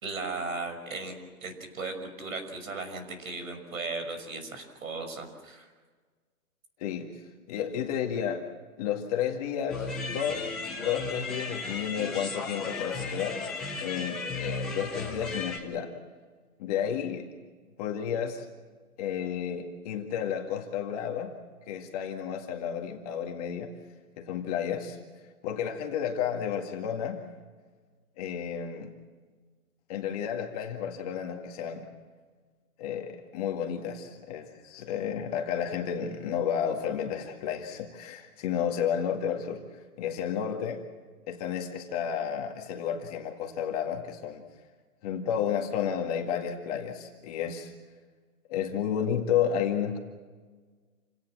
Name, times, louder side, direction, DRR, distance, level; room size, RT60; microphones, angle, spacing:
voice 1, 0.0-1.1 1.4-5.7, right 3 dB, 60° right, 6 dB, 6.1 m, -36 dB
voice 2, 7.5-8.4 8.8-10.5 10.8-15.9 16.6-17.3 17.8-18.5 19.0-21.3 21.6-23.7 24.2-25.0 25.4-27.2 28.2-28.9 29.9-31.9 32.8-39.6 40.0-40.8 41.3-44.4 45.0-47.7 48.5-50.0, left 8 dB, 25° left, 2 dB, 2.1 m, -31 dB
sound 1, 9.7-15.6, left 3 dB, ahead, 0.7 m, -35 dB
28.0 x 17.5 x 7.6 m, 1.5 s
hypercardioid pair, 155°, 45 cm